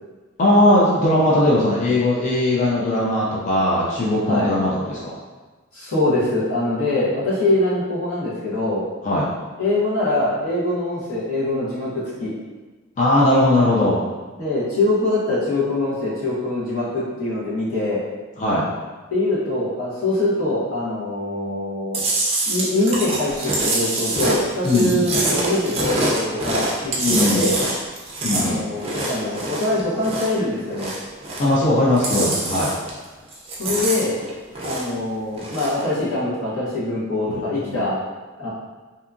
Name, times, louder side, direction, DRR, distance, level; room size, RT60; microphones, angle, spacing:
voice 1, 0.4-5.1 9.0-9.3 13.0-14.0 18.4-18.6 24.6-25.0 27.0-27.5 28.2-28.6 31.4-32.7 37.3-37.4 37.7-37.8, left 1 dB, 35° left, -6 dB, 0.3 m, -19 dB
voice 2, 5.7-8.8 9.6-11.9 12.2-12.3 14.4-18.0 19.1-22.0 22.5-27.6 28.3-30.9 33.6-34.2 34.6-38.0 38.4-38.5, left 2 dB, 90° left, -8 dB, 1.0 m, -23 dB
Chewing mastication, 21.9-30.4 30.7-31.6 31.9-33.0 33.3-35.0 35.3-35.8, right 2 dB, 30° right, 0.4 m, -25 dB
2.7 x 2.3 x 2.4 m, 1.3 s
head